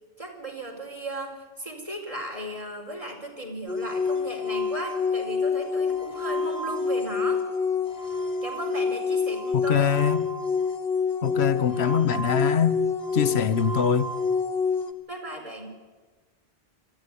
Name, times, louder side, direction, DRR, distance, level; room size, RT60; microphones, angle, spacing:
voice 1, 0.2-7.4 8.4-9.9 15.1-15.7, right 1 dB, 35° right, 4.8 m, -36 dB
sound 1, 3.7-14.9, left 5 dB, 70° left, 1.7 m, -27 dB
voice 2, 9.5-10.2 11.2-12.8 13.1-14.1, left 7 dB, 85° left, 1.2 m, -23 dB
24.0 x 14.5 x 9.8 m
omnidirectional pair, 1.1 m